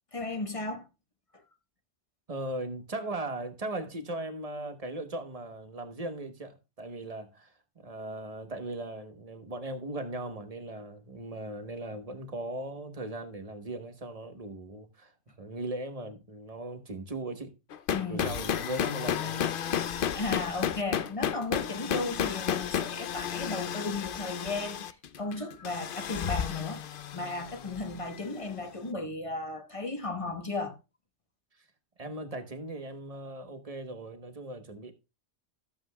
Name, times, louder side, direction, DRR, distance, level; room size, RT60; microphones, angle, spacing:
voice 1, 0.1-0.9 1.3-1.4 17.9-18.3 20.1-30.8, left 3 dB, 30° left, 1.0 m, -35 dB
voice 2, 2.3-17.5 18.1-19.6 32.0-34.9, right 2 dB, 35° right, 1.1 m, -38 dB
sound 1, 17.7-28.5, left 8 dB, 55° left, 0.7 m, -32 dB
14.0 x 7.6 x 2.2 m
omnidirectional pair, 1.2 m